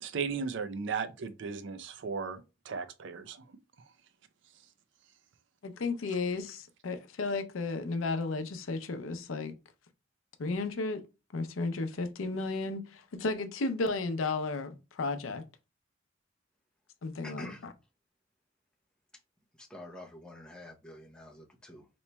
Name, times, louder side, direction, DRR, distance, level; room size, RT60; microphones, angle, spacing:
voice 1, 0.0-3.4, right 5 dB, 65° right, 0.4 m, -36 dB
voice 2, 5.6-9.5 10.4-11.0 11.3-15.4 17.0-17.5, left 3 dB, 85° left, 0.5 m, -33 dB
voice 3, 17.2-17.7 19.6-21.9, left 1 dB, 5° left, 0.7 m, -47 dB
4.0 x 3.0 x 2.2 m
head